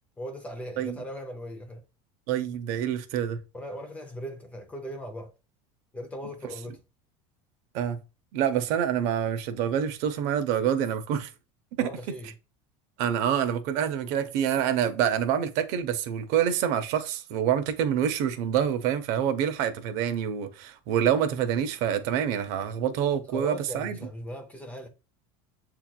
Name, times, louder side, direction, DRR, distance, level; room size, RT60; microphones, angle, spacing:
voice 1, 0.2-1.8 3.5-5.3 5.9-6.8 11.8-12.3 23.3-24.9, equal, 10° left, 0.4 m, -38 dB
voice 2, 2.3-3.4 7.7-8.0 8.3-11.3 11.8-11.9 13.0-24.0, right 9 dB, 55° right, 0.6 m, -26 dB
7.4 x 2.9 x 2.2 m
cardioid pair, 170°, 14 cm